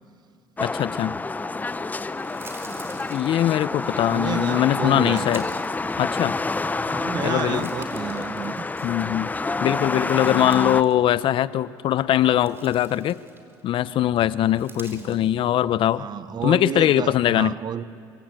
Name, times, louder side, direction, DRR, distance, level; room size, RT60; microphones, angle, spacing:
voice 1, 0.6-1.2 3.1-5.4 6.0-6.3 7.2-7.7 8.8-9.3 9.6-13.2 13.6-16.1 16.4-17.6, left 12 dB, 60° left, 0.8 m, -21 dB
sound 1, 0.6-10.8, left 3 dB, 15° left, 0.8 m, -28 dB
sound 2, 1.8-3.9 4.6-6.6 7.0-9.1 9.5-10.9 11.2-11.4 12.0-13.7 14.4-15.3, right 3 dB, 25° right, 4.3 m, -48 dB
voice 2, 2.6-3.1 3.7-5.3 6.8-8.6 14.9-15.2 15.9-17.8, right 8 dB, 45° right, 0.8 m, -32 dB
25.5 x 24.0 x 9.0 m
supercardioid pair, 80°, 10 cm